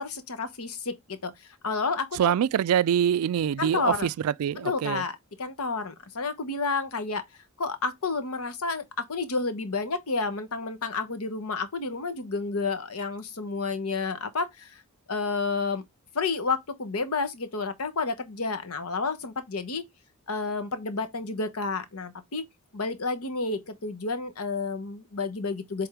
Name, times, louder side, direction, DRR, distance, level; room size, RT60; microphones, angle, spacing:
voice 1, 0.0-1.3 1.6-2.3 3.6-4.1 4.6-7.2 7.6-14.8 15.1-15.8 16.1-19.8 20.3-22.4 22.7-25.9, left 4 dB, 85° left, 1.1 m, -30 dB
voice 2, 2.1-5.0, right 9 dB, 90° right, 0.3 m, -25 dB
7.9 x 3.6 x 3.5 m
head